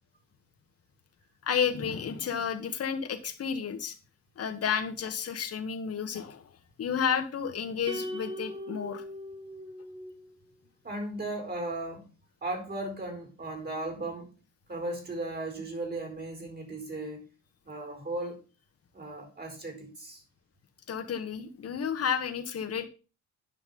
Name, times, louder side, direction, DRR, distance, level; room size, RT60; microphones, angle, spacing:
voice 1, 1.4-3.9 4.4-6.5 6.8-9.0 20.9-22.9, left 7 dB, 55° left, 1.7 m, -31 dB
clean guitar bend, 7.9-10.3, equal, 15° right, 1.8 m, -39 dB
voice 2, 10.8-12.1 12.4-14.3 14.7-17.3 17.6-18.4 18.9-20.2, right 2 dB, 35° right, 4.2 m, -36 dB
10.0 x 5.8 x 5.5 m
cardioid pair, 90°, 30 cm